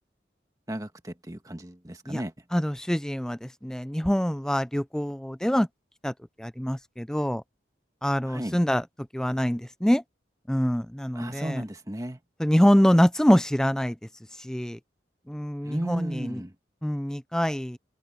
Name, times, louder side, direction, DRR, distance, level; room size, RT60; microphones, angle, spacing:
voice 1, 0.7-2.3 8.2-8.6 11.1-12.2 15.6-16.5, right 1 dB, 20° right, 1.5 m, -34 dB
voice 2, 2.5-5.7 6.0-6.1 6.4-7.4 8.0-8.8 9.1-10.0 10.5-11.6 12.4-14.0 14.4-14.8 15.3-16.4 16.8-17.8, equal, 5° left, 0.4 m, -25 dB
head